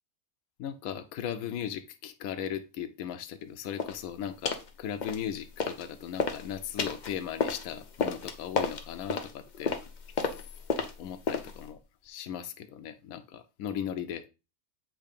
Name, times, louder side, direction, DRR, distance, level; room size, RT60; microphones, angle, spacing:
voice 1, 0.6-9.8 10.7-14.2, left 9 dB, 75° left, 1.0 m, -37 dB
sound 1, 3.8-4.0 4.4-4.7 5.0-5.8 6.1-11.7, left 5 dB, 45° left, 0.6 m, -32 dB
7.5 x 2.7 x 5.1 m
omnidirectional pair, 1.5 m